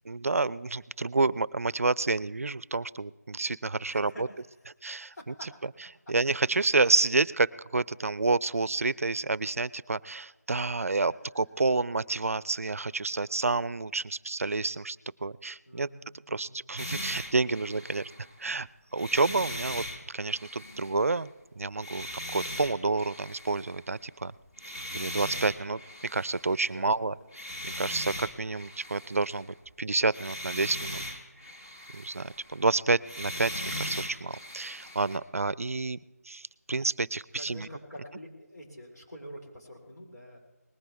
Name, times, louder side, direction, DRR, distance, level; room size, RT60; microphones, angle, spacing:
voice 1, 0.1-4.3 4.8-5.1 6.1-15.9 16.3-18.1 18.4-19.9 20.1-22.1 22.3-24.3 24.9-27.1 27.6-31.0 31.9-36.0 36.3-37.7, right 3 dB, 60° right, 21 dB, 0.4 m, -29 dB
voice 2, 3.9-4.4 5.1-5.6 6.1-6.2 10.8-11.3 15.7-16.7 26.6-27.2 37.3-40.4, equal, 75° left, 0 dB, 4.1 m, -47 dB
sound 1, 16.8-18.5 18.9-21.3 21.8-24.1 24.5-26.7 27.3-29.7 30.1-32.7 33.0-35.2, left 1 dB, 15° left, 1.0 m, -39 dB
19.5 x 14.5 x 3.4 m, 1.0 s
figure-of-eight pair, 175°, 9 cm